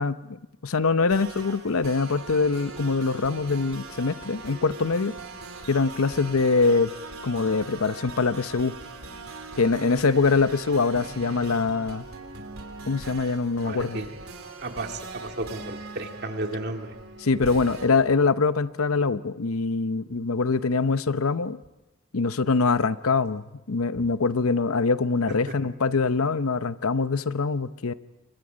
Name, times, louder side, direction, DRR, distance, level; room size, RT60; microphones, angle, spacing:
voice 1, 0.0-5.1 5.7-6.9 7.2-8.7 9.6-12.0 12.9-14.0 17.2-21.6 22.1-27.9, left 4 dB, 80° left, 13 dB, 0.8 m, -24 dB
sound 1, 1.1-17.9, right 3 dB, 75° right, 3.5 m, -41 dB
voice 2, 13.6-14.2 14.6-16.9 17.4-17.5, right 2 dB, 50° right, 4 dB, 2.2 m, -33 dB
30.0 x 23.5 x 5.1 m, 1.0 s
head